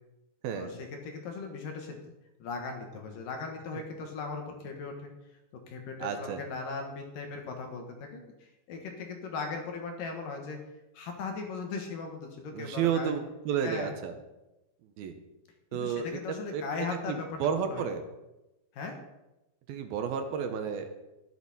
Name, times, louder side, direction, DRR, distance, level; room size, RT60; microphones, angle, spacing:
voice 1, 0.5-2.0 2.4-5.1 5.7-10.6 10.9-13.1 13.6-13.9 15.7-17.9 18.7-18.9, left 4 dB, 65° left, 3 dB, 3.0 m, -38 dB
voice 2, 6.0-6.4 12.5-14.2 15.0-15.1 15.7-16.1 16.5-18.0 19.7-20.9, right 7 dB, 80° right, 7 dB, 2.8 m, -31 dB
12.5 x 11.0 x 4.2 m, 0.98 s
omnidirectional pair, 4.4 m